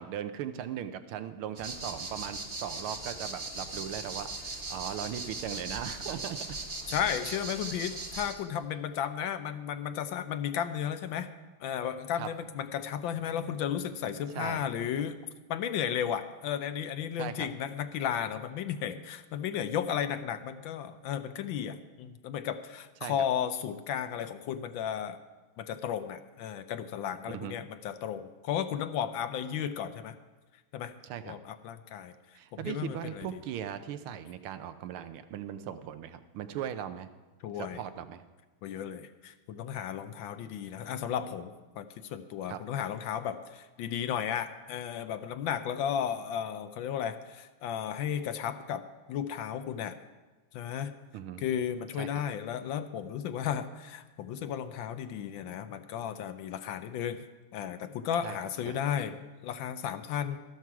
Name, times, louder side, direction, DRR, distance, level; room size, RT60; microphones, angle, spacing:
voice 1, 0.0-6.6 12.2-12.3 14.3-14.7 17.2-17.5 23.0-23.3 27.3-27.5 31.0-31.4 32.3-37.1 37.5-38.2 42.5-42.6 51.1-51.4 52.0-52.2 58.2-58.4 58.7-58.8, right 10 dB, 85° right, 10 dB, 1.6 m, -38 dB
sound 1, 1.6-8.3, right 2 dB, 30° right, 1.2 m, -39 dB
voice 2, 6.9-11.3 11.6-15.2 15.5-25.2 25.6-30.2 30.7-30.9 31.2-32.1 32.5-33.3 37.4-37.8 38.6-50.0 50.5-50.9 51.4-57.2 57.5-60.4, left 9 dB, 75° left, 10 dB, 1.3 m, -34 dB
13.0 x 12.0 x 4.6 m, 1.2 s
omnidirectional pair, 2.3 m